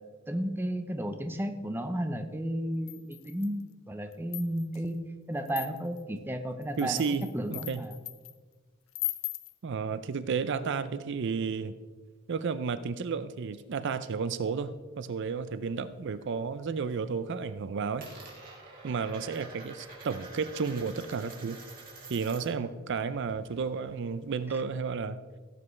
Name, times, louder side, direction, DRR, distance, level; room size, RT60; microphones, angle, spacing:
voice 1, 0.3-7.0 7.3-7.9 24.5-24.6, equal, 10° right, 6 dB, 0.6 m, -33 dB
sound 1, 2.9-3.6 4.1-4.8 5.5-6.0 6.6-8.3 8.9-9.5, left 17 dB, 70° left, 0.6 m, -38 dB
voice 2, 6.8-7.8 9.6-11.7 12.3-18.1 18.8-21.6 22.1-25.2, right 5 dB, 60° right, 13 dB, 0.5 m, -32 dB
Coin (dropping), 15.1-16.3 16.6-17.1 17.4-22.7 22.9-24.6, right 3 dB, 45° right, 2.7 m, -48 dB
16.0 x 7.6 x 3.2 m, 1.4 s
head